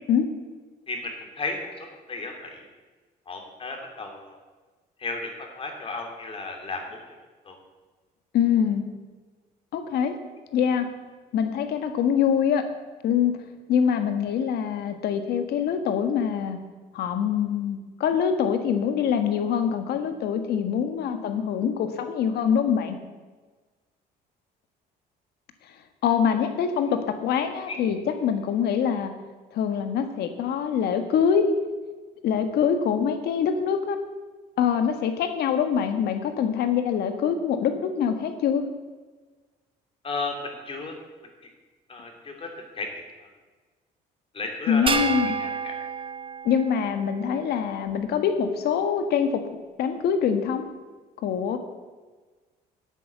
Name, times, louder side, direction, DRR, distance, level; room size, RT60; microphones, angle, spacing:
voice 1, 0.9-2.6 3.3-4.4 5.0-7.0 7.5-7.6 27.7-27.8 40.0-40.9 41.9-42.5 42.8-43.0 44.3-45.8, left 3 dB, 35° left, 3 dB, 3.0 m, -34 dB
voice 2, 8.3-8.9 9.7-10.2 10.5-10.9 11.3-12.7 13.0-13.4 13.7-16.6 16.9-23.0 26.0-29.1 29.5-31.5 32.2-34.0 34.6-38.7 44.7-45.3 46.4-49.4 49.8-50.7 51.2-51.6, left 7 dB, 70° left, 7 dB, 1.6 m, -24 dB
sound 1, 44.9-47.4, right 5 dB, 30° right, 0.9 m, -30 dB
10.5 x 8.4 x 8.2 m, 1.3 s
cardioid pair, 110°, 17 cm